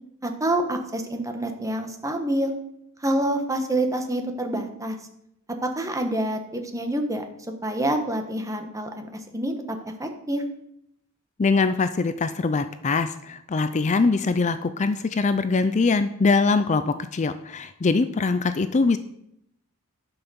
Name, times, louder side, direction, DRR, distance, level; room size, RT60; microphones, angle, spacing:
voice 1, 0.2-2.5 3.0-5.0 5.6-7.2 7.6-9.1 9.3-10.4, right 1 dB, 15° right, 5 dB, 1.2 m, -27 dB
voice 2, 11.4-19.0, left 4 dB, 35° left, 11 dB, 0.4 m, -22 dB
11.0 x 5.8 x 6.9 m, 0.76 s
head